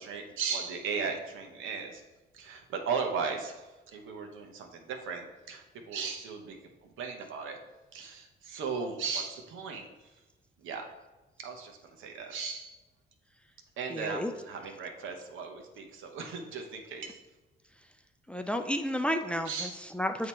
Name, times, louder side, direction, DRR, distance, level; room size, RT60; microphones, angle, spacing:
voice 1, 0.0-2.0 2.3-3.7 3.9-6.6 6.8-7.6 7.9-9.9 10.6-10.8 11.4-12.8 13.8-17.2 19.5-19.7, right 5 dB, 85° right, 3 dB, 0.9 m, -36 dB
voice 2, 13.9-14.3 18.3-20.3, equal, 5° left, 6 dB, 0.4 m, -32 dB
7.9 x 2.9 x 4.3 m, 1.1 s
cardioid pair, 90°, 20 cm